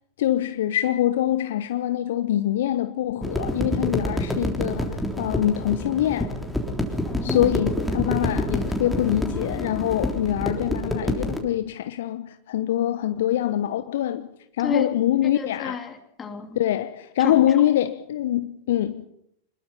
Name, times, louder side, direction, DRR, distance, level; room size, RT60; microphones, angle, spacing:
voice 1, 0.2-6.3 7.2-14.3 14.6-15.9 16.5-19.1, left 12 dB, 55° left, 0.9 m, -24 dB
sound 1, 3.2-11.4, left 1 dB, ahead, 3.4 m, -27 dB
voice 2, 7.0-7.5 14.6-14.9 15.6-16.6, left 5 dB, 20° left, 3.1 m, -31 dB
25.5 x 21.0 x 5.6 m
figure-of-eight pair, 90°, 0 cm